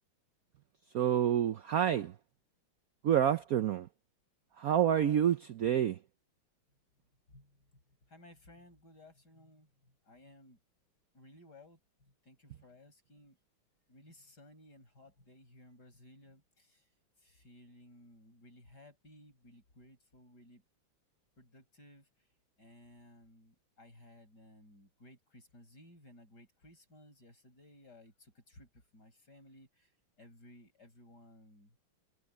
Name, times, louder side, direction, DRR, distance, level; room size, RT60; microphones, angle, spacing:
voice 1, 0.9-2.1 3.0-3.9 4.6-6.0, right 10 dB, 85° right, 0.7 m, -28 dB
voice 2, 7.3-10.6 11.1-13.4 13.9-16.9 17.2-20.6 21.4-22.1 22.6-29.9 30.2-31.8, left 1 dB, 50° left, 7.6 m, -58 dB
omnidirectional pair, 2.4 m